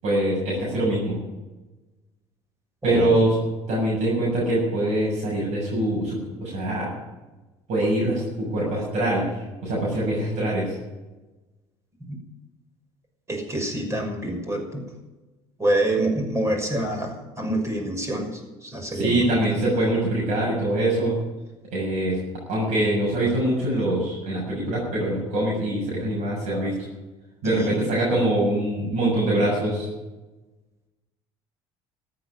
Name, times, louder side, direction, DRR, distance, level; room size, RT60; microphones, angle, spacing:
voice 1, 0.0-1.2 2.8-3.4 3.7-6.9 7.7-9.3 9.6-10.8 18.9-21.2 21.7-22.2 22.5-26.7 27.4-29.9, right 1 dB, 65° right, -5 dB, 7.1 m, -23 dB
voice 2, 2.8-3.2 12.1-12.2 13.3-14.8 15.6-19.4 27.4-27.9, right 1 dB, 20° right, 3 dB, 6.2 m, -26 dB
14.0 x 9.3 x 9.7 m, 1.1 s
supercardioid pair, 85°, 13 cm